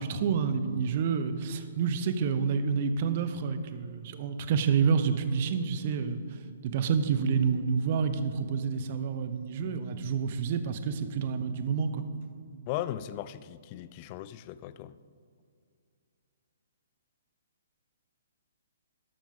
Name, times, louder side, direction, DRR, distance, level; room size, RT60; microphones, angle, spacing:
voice 1, 0.0-12.0, right 6 dB, 40° right, 0.9 m, -29 dB
voice 2, 12.7-14.9, left 12 dB, 35° left, 0.4 m, -37 dB
12.5 x 12.0 x 3.7 m
figure-of-eight pair, 125°, 0 cm